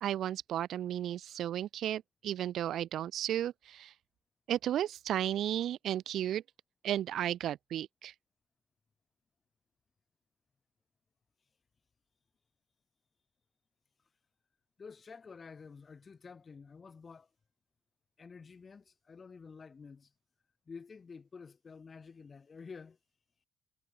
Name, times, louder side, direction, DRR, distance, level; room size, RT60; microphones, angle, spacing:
voice 1, 0.0-3.9 4.5-6.4 6.8-8.1, right 11 dB, 75° right, 0.4 m, -34 dB
voice 2, 14.8-17.3 18.2-20.1 20.7-23.0, left 5 dB, 35° left, 6.2 m, -50 dB
cardioid pair, 90°, 0 cm